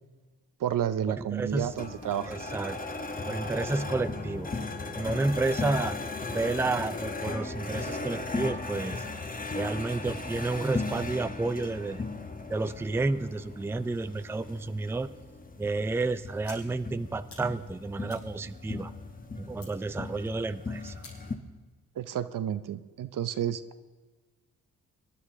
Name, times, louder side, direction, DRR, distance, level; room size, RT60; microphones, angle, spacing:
voice 1, 0.6-2.4 22.0-23.6, right 10 dB, 65° right, 12 dB, 0.7 m, -31 dB
voice 2, 1.2-1.7 2.3-2.8 3.3-4.5 5.0-6.0 6.3-9.0 9.5-12.0 12.5-15.1 15.6-18.9 19.4-20.9, right 3 dB, 5° right, 12 dB, 0.4 m, -31 dB
sound 1, 1.5-21.3, left 3 dB, 25° left, 1.2 m, -37 dB
sound 2, 16.4-16.6 17.0-17.4 17.8-19.1 19.6-19.9 20.3-20.4 21.0-21.4, left 3 dB, 80° left, 5.5 m, -49 dB
24.0 x 11.0 x 3.6 m, 1.3 s
cardioid pair, 65°, 35 cm